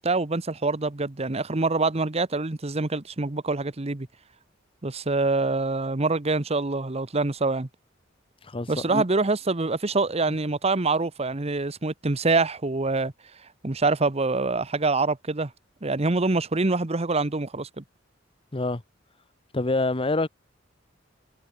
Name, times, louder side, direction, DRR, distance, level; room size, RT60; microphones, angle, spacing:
voice 1, 0.0-4.1 4.8-7.7 8.7-13.1 13.6-15.5 15.8-17.8, right 3 dB, 30° right, 1.0 m, -25 dB
voice 2, 8.4-9.0 18.5-18.8 19.5-20.3, left 2 dB, 30° left, 1.0 m, -26 dB
head